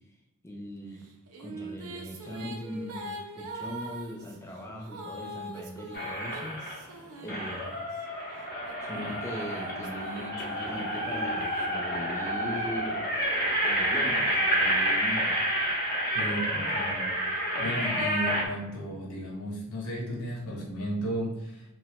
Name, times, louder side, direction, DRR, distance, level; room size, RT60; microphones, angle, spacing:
voice 1, 0.4-1.0 1.4-7.0 7.2-7.9 8.8-13.3 13.6-15.4, equal, 15° left, -1 dB, 0.5 m, -40 dB
sound 1, 1.0-8.0 8.6-12.4, right 1 dB, 80° right, 0.5 m, -43 dB
sound 2, 5.9-6.8 7.3-18.5, right 1 dB, 45° left, 0.7 m, -29 dB
voice 2, 16.1-17.1 17.6-21.6, equal, 85° left, -2 dB, 0.9 m, -34 dB
3.1 x 2.1 x 2.9 m, 0.90 s
head